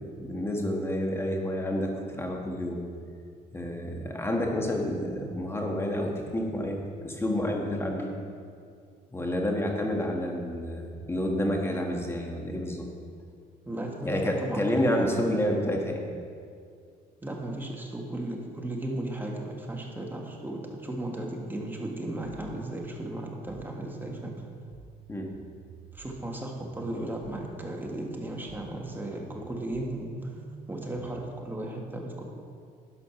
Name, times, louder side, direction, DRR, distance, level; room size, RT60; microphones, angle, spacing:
voice 1, 0.0-2.8 3.5-8.1 9.1-12.9 14.0-16.1 25.1-25.3, left 1 dB, 15° left, 1 dB, 1.5 m, -29 dB
voice 2, 13.7-15.5 17.2-24.4 25.9-30.4 30.7-32.2, right 1 dB, 10° right, 0 dB, 1.5 m, -35 dB
sound 1, 21.6-31.6, right 4 dB, 45° right, 0.8 m, -49 dB
11.5 x 5.0 x 5.9 m, 2.2 s
cardioid pair, 110°, 17 cm